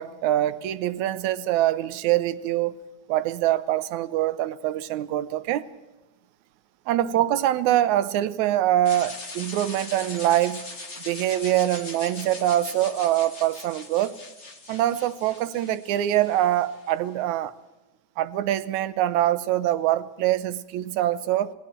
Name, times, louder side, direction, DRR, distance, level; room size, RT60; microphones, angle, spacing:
voice 1, 0.0-2.8 3.1-5.7 6.9-10.6 11.1-14.2 14.7-17.5 18.2-21.5, right 13 dB, 85° right, 15 dB, 2.2 m, -24 dB
sound 1, 8.8-16.9, left 3 dB, 25° left, 1.8 m, -41 dB
29.0 x 20.5 x 4.5 m, 1.1 s
omnidirectional pair, 3.3 m